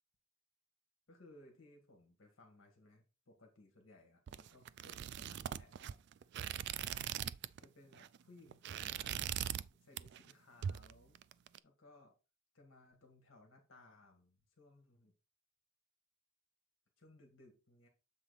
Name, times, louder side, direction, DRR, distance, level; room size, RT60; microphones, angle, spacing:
voice 1, 1.1-6.3 6.6-7.3 7.6-11.2 11.6-12.1 12.5-15.1 17.0-17.9, left 2 dB, 70° left, 3 dB, 1.7 m, -63 dB
sound 1, 4.3-7.6 7.9-8.2 8.5-9.7 10.0-10.3 10.6-11.6, right 10 dB, 55° right, 0.3 m, -41 dB
7.5 x 4.0 x 4.0 m, 0.31 s
head